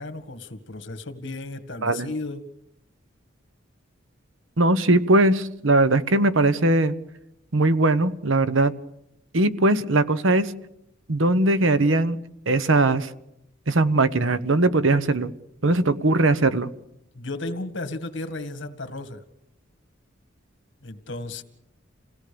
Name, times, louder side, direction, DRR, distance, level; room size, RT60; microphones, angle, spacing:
voice 1, 0.0-2.4 17.1-19.2 20.8-21.4, left 2 dB, 65° left, 9 dB, 2.0 m, -34 dB
voice 2, 4.6-6.9 7.5-8.7 9.3-10.5 11.1-12.2 12.5-13.1 13.7-15.3 15.6-16.7, right 2 dB, 90° right, 14 dB, 1.1 m, -20 dB
28.5 x 17.5 x 7.0 m, 0.82 s
head